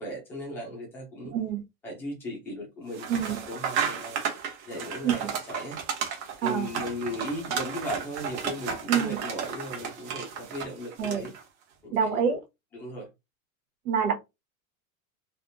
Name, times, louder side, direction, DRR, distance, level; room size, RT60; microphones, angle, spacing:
voice 1, 0.0-1.4 1.8-4.2 4.6-5.8 6.4-11.3 11.8-12.1 12.7-13.1, left 1 dB, 5° left, 0.4 m, -37 dB
sound 1, 2.9-11.4, right 7 dB, 55° right, 1.1 m, -33 dB
voice 2, 8.9-9.2 11.0-11.2 11.9-12.4 13.8-14.1, right 7 dB, 80° right, 1.4 m, -26 dB
3.4 x 2.3 x 2.6 m
supercardioid pair, 175°, 43 cm